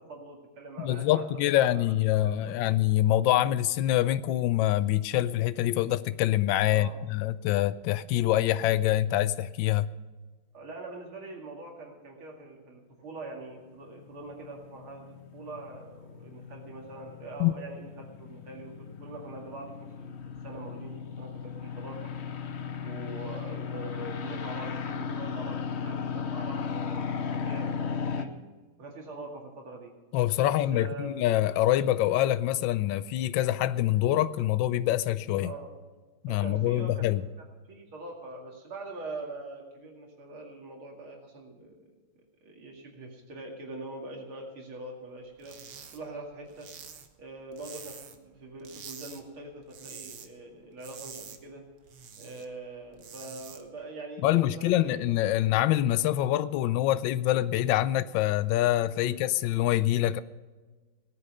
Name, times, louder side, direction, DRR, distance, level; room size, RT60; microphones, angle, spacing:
voice 1, 0.0-1.2 1.5-2.5 6.7-7.0 10.5-22.1 22.8-28.3 28.8-29.9 30.4-31.2 35.4-35.8 36.3-37.0 37.7-41.9 42.4-45.6 45.9-46.7 47.2-51.6 52.2-55.1 59.0-59.2, right 2 dB, 75° right, 3.1 m, -43 dB
voice 2, 0.8-9.9 17.4-17.5 30.1-35.5 36.2-37.2 54.2-60.2, left 13 dB, 75° left, 1.2 m, -25 dB
sound 1, 13.6-28.3, left 6 dB, 55° left, 0.7 m, -36 dB
sound 2, 45.4-46.0 46.3-48.3 48.6-49.2 49.5-50.3 50.6-52.4 52.8-53.6, right 7 dB, 60° right, 1.6 m, -46 dB
17.5 x 9.8 x 5.5 m
omnidirectional pair, 2.3 m